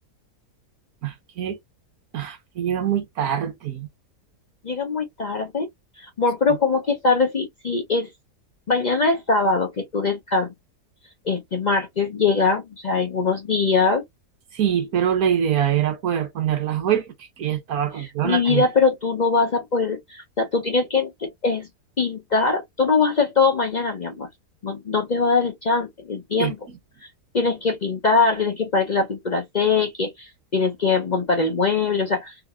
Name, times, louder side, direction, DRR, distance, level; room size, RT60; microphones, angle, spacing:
voice 1, 1.0-1.6 2.1-3.9 14.5-18.6 26.4-26.8, right 9 dB, 65° right, 1.4 m, -24 dB
voice 2, 4.6-5.7 6.0-8.1 8.7-10.5 11.2-14.0 17.9-21.7 22.0-24.3 24.6-26.6 27.3-32.4, left 4 dB, 70° left, 0.4 m, -22 dB
3.8 x 2.7 x 2.3 m
omnidirectional pair, 1.7 m